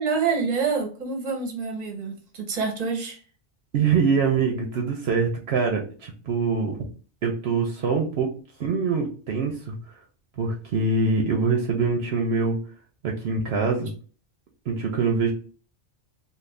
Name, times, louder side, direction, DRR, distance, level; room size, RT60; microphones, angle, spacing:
voice 1, 0.0-3.2, right 5 dB, 40° right, 0.8 m, -27 dB
voice 2, 3.7-6.8 7.2-8.3 8.6-9.8 10.4-12.6 13.0-13.9 14.7-15.3, right 4 dB, 65° right, 0.9 m, -24 dB
2.6 x 2.4 x 3.3 m
omnidirectional pair, 1.2 m